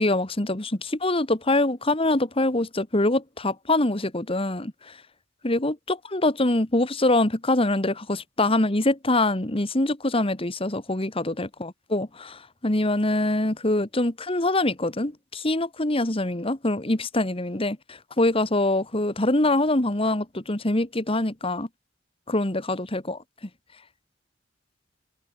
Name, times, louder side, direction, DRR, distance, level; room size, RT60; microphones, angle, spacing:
voice 1, 0.0-4.7 5.4-21.7 22.3-23.2, left 2 dB, 30° left, 1.8 m, -24 dB
head